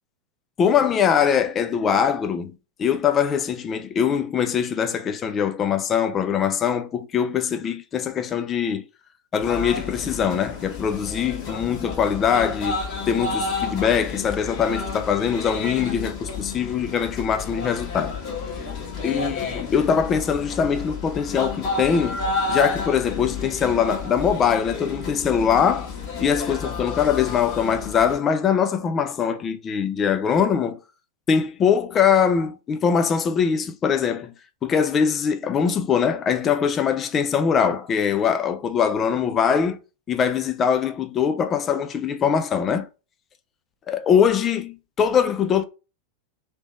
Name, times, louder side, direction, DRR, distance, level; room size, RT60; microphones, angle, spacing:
voice 1, 0.6-8.8 9.3-18.2 19.0-22.2 22.5-25.9 26.2-30.8 31.3-34.3 34.6-39.8 40.1-42.9 43.9-45.6, left 7 dB, 25° left, 0.5 m, -22 dB
sound 1, 9.4-28.2, left 4 dB, 40° left, 1.6 m, -31 dB
3.3 x 3.0 x 3.8 m
figure-of-eight pair, 90°, 0 cm